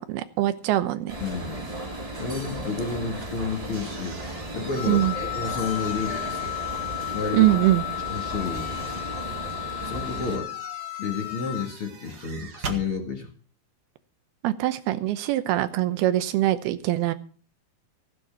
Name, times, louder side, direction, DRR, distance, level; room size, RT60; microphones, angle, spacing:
voice 1, 0.0-1.2 4.9-5.1 7.3-7.8 14.4-17.1, right 15 dB, 90° right, 11 dB, 2.9 m, -23 dB
sound 1, 1.1-10.4, right 1 dB, 45° right, 0.4 m, -35 dB
voice 2, 1.2-1.6 2.2-5.1 5.3-6.5 7.1-7.6 8.1-9.0 9.8-10.5 11.0-13.3, left 5 dB, 40° left, 2 dB, 2.3 m, -31 dB
sound 2, 3.1-7.3 8.0-12.9, right 4 dB, 65° right, 1.0 m, -43 dB
Wind instrument woodwind instrument, 4.8-11.7, left 25 dB, 75° left, 2.1 m, -34 dB
16.0 x 8.5 x 6.0 m, 0.42 s
omnidirectional pair, 4.4 m